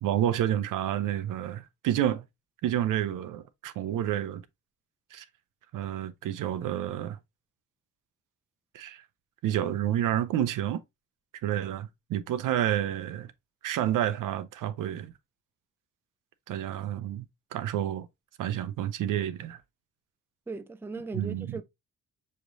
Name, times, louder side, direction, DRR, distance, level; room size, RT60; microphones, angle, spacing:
voice 1, 0.0-2.2 2.6-4.4 5.1-5.2 5.7-7.2 8.7-9.0 9.4-10.8 11.4-13.3 13.6-15.1 16.5-17.2 17.5-18.1 18.4-19.6 21.1-21.6, right 11 dB, 65° right, 0.6 m, -29 dB
voice 2, 20.5-21.6, right 3 dB, 5° right, 0.4 m, -38 dB
6.6 x 3.1 x 2.6 m
cardioid pair, 85°, 33 cm